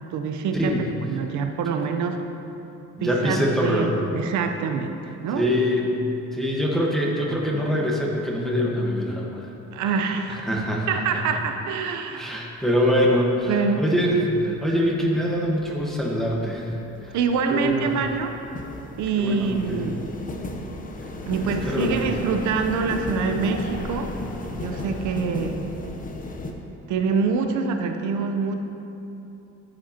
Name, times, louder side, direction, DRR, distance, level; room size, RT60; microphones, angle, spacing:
voice 1, 0.0-0.8 1.0-2.2 3.0-5.5 9.7-10.5 10.9-12.3 13.5-13.8 17.1-18.4 19.0-20.1 21.3-24.1 24.6-25.7 26.9-28.5, right 5 dB, 75° right, 5 dB, 0.8 m, -25 dB
voice 2, 3.0-3.9 5.4-6.0 6.3-9.5 10.3-11.2 12.2-16.7 17.0-17.2 17.5-17.9 19.2-19.8 21.4-21.9, equal, ahead, -3 dB, 1.3 m, -24 dB
sound 1, 12.6-13.0 13.5-26.5, left 1 dB, 30° left, 0.8 m, -34 dB
13.5 x 7.8 x 2.9 m, 2.9 s
cardioid pair, 125°, 29 cm